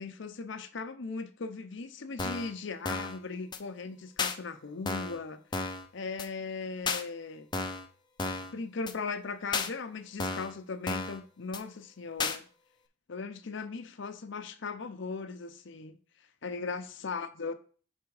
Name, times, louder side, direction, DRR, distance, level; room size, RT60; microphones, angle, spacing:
voice 1, 0.0-5.4 5.9-7.5 8.5-12.5 13.1-16.0 16.4-17.5, left 4 dB, 70° left, 0.7 m, -38 dB
sound 1, 2.2-2.5 2.8-3.2 3.5-3.6 4.2-4.3 4.9-5.2 5.5-5.8 6.2-6.3 6.9-7.0 7.5-7.9 8.2-8.5 8.9-9.0 9.5-9.7 10.2-10.5 10.9-11.2 11.5-11.6 12.2-12.4, left 4 dB, 25° left, 0.5 m, -33 dB
7.3 x 3.5 x 4.8 m
head